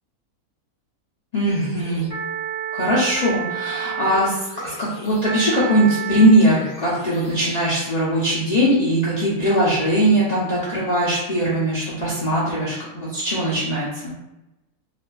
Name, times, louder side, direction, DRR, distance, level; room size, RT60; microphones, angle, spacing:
voice 1, 1.3-2.1 2.7-4.4 4.6-14.1, right 1 dB, 80° left, -8 dB, 0.3 m, -20 dB
sound 1, 1.4-7.7, right 8 dB, 25° right, 1.1 m, -32 dB
2.6 x 2.4 x 2.2 m, 0.95 s
omnidirectional pair, 1.5 m